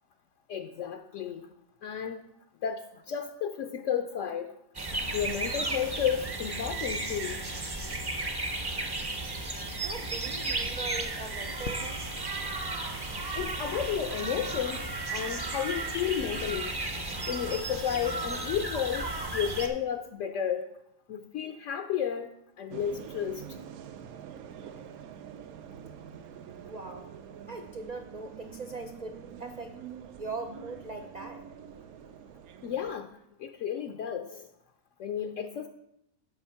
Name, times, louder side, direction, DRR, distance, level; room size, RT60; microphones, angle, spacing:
voice 1, 0.5-1.5 1.8-2.2 2.6-2.8 3.1-4.5 5.1-7.4 13.4-16.8 17.3-20.6 21.1-22.3 22.6-23.4 32.6-33.1 33.4-34.4 35.0-35.7, left 8 dB, 65° left, 6 dB, 0.9 m, -32 dB
sound 1, 4.7-19.7, right 2 dB, 25° right, 0.6 m, -34 dB
voice 2, 9.8-12.0 26.7-27.1 27.5-29.8 30.2-31.4, right 3 dB, 70° right, 5 dB, 0.4 m, -40 dB
sound 2, 22.7-32.9, right 8 dB, 85° right, 1.1 m, -46 dB
8.1 x 6.1 x 5.6 m, 0.81 s
omnidirectional pair, 1.5 m